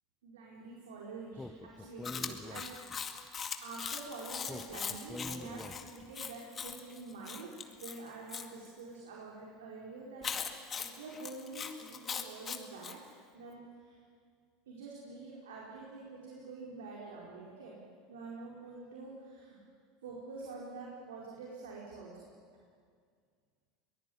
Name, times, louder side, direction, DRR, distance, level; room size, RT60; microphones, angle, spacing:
voice 1, 0.2-2.7 3.6-10.2 10.8-13.0 13.3-14.0 14.7-17.8 18.1-19.6 20.0-22.3, right 3 dB, 85° right, -4 dB, 4.8 m, -47 dB
Speech, 1.3-3.2 4.4-6.2, left 2 dB, 10° left, 0.9 m, -46 dB
Chewing mastication, 2.0-8.5 10.2-13.0, left 6 dB, 30° left, 2.1 m, -41 dB
23.5 x 19.5 x 9.6 m, 2.1 s
hypercardioid pair, 95°, 0 cm